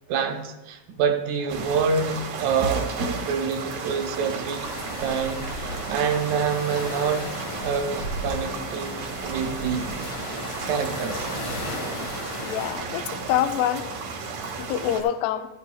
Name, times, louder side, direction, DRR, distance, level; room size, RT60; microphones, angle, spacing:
voice 1, 0.1-2.9 3.3-4.6 5.0-7.3 7.6-9.9 10.7-11.3 12.4-12.5 14.3-14.5, right 6 dB, 80° right, 4 dB, 3.6 m, -27 dB
sound 1, 1.5-15.0, right 4 dB, 65° right, 1.9 m, -33 dB
sound 2, 4.6-12.7, left 1 dB, 50° left, 2.0 m, -35 dB
voice 2, 12.4-13.9 14.6-15.5, left 11 dB, 85° left, 9 dB, 3.0 m, -26 dB
15.0 x 13.5 x 2.3 m, 1.1 s
omnidirectional pair, 5.7 m